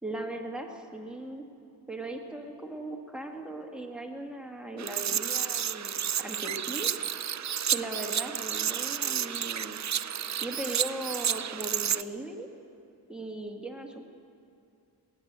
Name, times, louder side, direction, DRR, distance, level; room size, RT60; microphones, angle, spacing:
voice 1, 0.0-1.4 1.9-6.9 7.7-9.8 10.4-12.5 13.1-14.0, right 1 dB, ahead, 2 dB, 1.7 m, -38 dB
sound 1, 4.8-12.0, right 9 dB, 45° right, 0.5 m, -31 dB
20.0 x 8.9 x 8.1 m, 2.6 s
cardioid pair, 65°, 41 cm